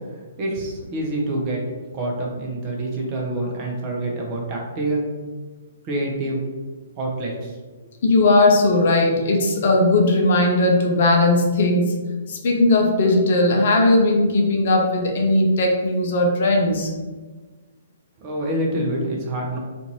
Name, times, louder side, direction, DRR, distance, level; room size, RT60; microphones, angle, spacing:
voice 1, 0.1-1.6 1.9-5.1 5.8-6.4 7.0-7.6 18.2-19.6, right 1 dB, 30° right, -1 dB, 0.7 m, -26 dB
voice 2, 8.0-11.9 12.3-16.9, left 2 dB, 50° left, 1 dB, 0.5 m, -18 dB
2.6 x 2.5 x 2.9 m, 1.3 s
figure-of-eight pair, 120°, 0 cm